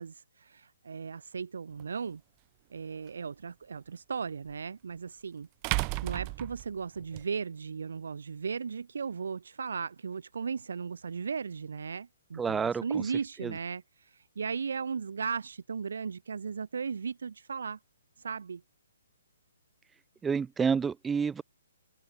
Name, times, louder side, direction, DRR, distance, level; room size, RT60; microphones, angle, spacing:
voice 1, 0.0-2.2 2.7-5.5 6.0-17.8 18.2-18.6, right 5 dB, 80° right, 7.2 m, -36 dB
sound 1, 1.8-1.9 4.5-4.6 5.6-7.2, right 40 dB or more, 25° right, 2.3 m, -33 dB
voice 2, 12.4-13.0 13.4-13.5 20.2-21.4, right 6 dB, 10° right, 3.4 m, -29 dB
open air
hypercardioid pair, 155°, 0 cm